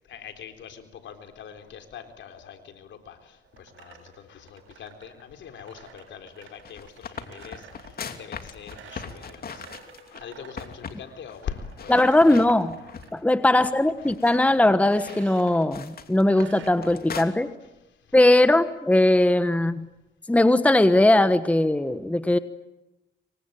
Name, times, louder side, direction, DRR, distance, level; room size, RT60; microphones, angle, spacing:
voice 1, 0.1-9.6 10.1-12.0 17.2-17.3, left 8 dB, 70° left, 6 dB, 3.9 m, -42 dB
sound 1, 3.4-10.8 11.2-13.1 13.4-13.9 14.8-15.6 16.2-16.7, right 7 dB, 75° right, 7.3 m, -49 dB
sound 2, 6.4-10.2 10.6-11.0 11.3-11.4 11.8-13.2 13.6-17.2, left 6 dB, 50° left, 2.8 m, -40 dB
voice 2, 11.9-12.7 13.1-17.5 18.1-19.8 20.3-22.4, left 1 dB, 5° left, 11 dB, 1.3 m, -19 dB
27.0 x 24.0 x 9.2 m, 0.99 s
cardioid pair, 90°, 20 cm